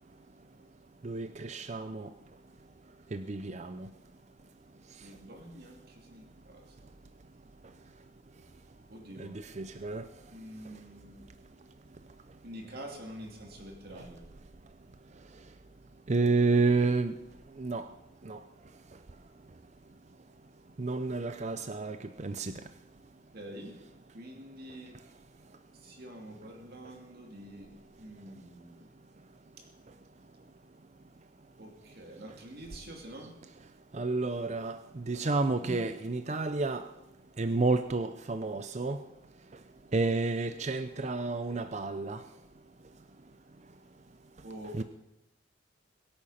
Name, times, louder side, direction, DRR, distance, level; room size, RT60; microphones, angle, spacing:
voice 1, 1.0-2.1 3.1-3.9 9.2-10.0 16.1-17.1 17.6-17.8 18.3-18.4 20.8-22.5 33.9-36.8 37.4-39.0 39.9-42.2 44.8-44.9, right 3 dB, 35° right, 10 dB, 0.5 m, -30 dB
voice 2, 5.0-6.9 8.9-9.3 10.3-11.2 12.4-14.2 23.3-23.8 24.1-25.0 25.8-27.7 28.0-28.9 29.6-29.7 31.6-33.3 35.6-35.9 44.4-44.8, right 1 dB, 50° right, 1 dB, 2.8 m, -46 dB
22.0 x 8.8 x 5.7 m, 0.92 s
head